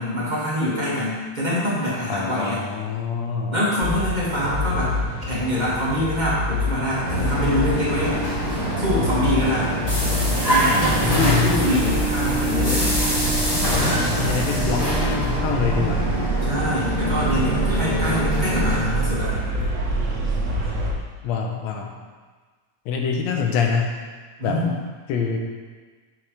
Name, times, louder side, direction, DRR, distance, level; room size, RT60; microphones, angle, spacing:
voice 1, 0.0-2.6 3.5-4.9 5.3-8.2 8.8-9.8 10.3-12.9 16.4-19.4 24.4-24.7, left 1 dB, 15° right, -8 dB, 1.8 m, -25 dB
voice 2, 2.1-3.6 10.7-11.7 13.6-16.1 17.9-18.1 18.7-19.0 21.2-22.0 22.9-24.0 24.4-24.6 25.1-25.4, left 6 dB, 75° left, 2 dB, 2.1 m, -26 dB
sound 1, 3.8-20.9, equal, 85° right, 0.6 m, -26 dB
sound 2, 7.0-18.8, equal, 15° left, 1.5 m, -24 dB
8.8 x 6.9 x 3.4 m, 1.4 s
omnidirectional pair, 3.3 m